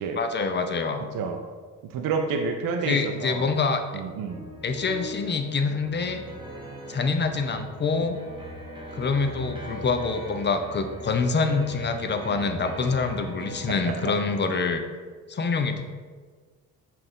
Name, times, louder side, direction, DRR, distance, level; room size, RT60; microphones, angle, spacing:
voice 1, 0.2-1.0 2.8-3.8 4.6-6.2 6.9-8.2 8.9-14.8 15.3-15.8, left 4 dB, 30° left, 7 dB, 0.5 m, -26 dB
voice 2, 1.9-3.4 3.9-4.5 13.9-14.1, right 5 dB, 60° right, 4 dB, 0.5 m, -29 dB
sound 1, 4.3-14.4, right 1 dB, 15° right, 1.3 m, -40 dB
5.8 x 2.6 x 3.5 m, 1.5 s
supercardioid pair, 60°, 39 cm